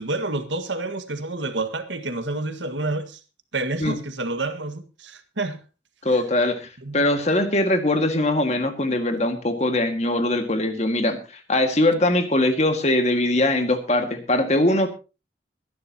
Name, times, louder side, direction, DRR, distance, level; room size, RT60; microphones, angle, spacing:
voice 1, 0.0-3.2 3.5-5.6 6.8-7.0, right 2 dB, 85° right, 1.7 m, -29 dB
voice 2, 6.0-14.9, left 1 dB, 35° left, 1.9 m, -21 dB
22.5 x 11.0 x 2.9 m
head